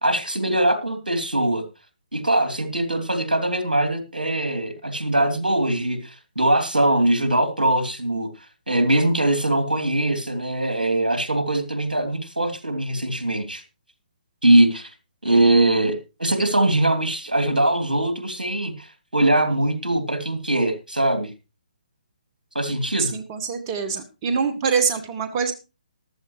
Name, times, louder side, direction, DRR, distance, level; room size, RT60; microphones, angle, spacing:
voice 1, 0.0-1.6 2.1-8.3 8.7-13.6 14.4-14.9 15.2-21.3 22.5-23.2, right 1 dB, 80° right, 7 dB, 2.9 m, -21 dB
voice 2, 23.0-25.5, right 6 dB, 25° right, 10 dB, 1.2 m, -24 dB
14.5 x 12.5 x 3.1 m, 0.30 s
figure-of-eight pair, 140°, 5 cm